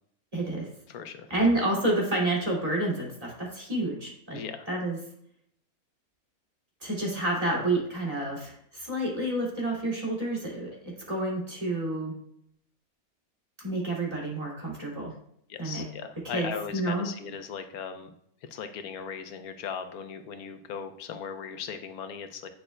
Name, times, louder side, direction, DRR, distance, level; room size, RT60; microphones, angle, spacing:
voice 1, 0.3-0.7 1.3-4.4 4.7-5.0 6.8-12.1 13.6-15.1 15.6-15.9 16.2-17.1, right 2 dB, 25° right, -4 dB, 2.5 m, -29 dB
voice 2, 0.9-1.3 4.3-4.7 15.5-18.1 18.5-22.5, left 7 dB, 85° left, 8 dB, 1.2 m, -38 dB
9.8 x 6.5 x 2.2 m, 0.69 s
omnidirectional pair, 1.5 m